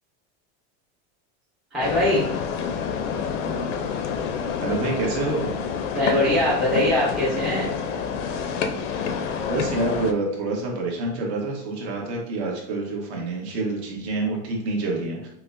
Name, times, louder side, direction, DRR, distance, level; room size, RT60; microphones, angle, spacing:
voice 1, 1.7-2.2 5.9-7.7, left 1 dB, ahead, -9 dB, 0.3 m, -22 dB
sound 1, 1.8-10.1, left 6 dB, 85° left, 0.6 m, -28 dB
voice 2, 4.6-5.5 9.2-15.3, right 2 dB, 65° right, -1 dB, 1.3 m, -27 dB
5.4 x 2.0 x 2.5 m, 0.84 s
supercardioid pair, 175°, 36 cm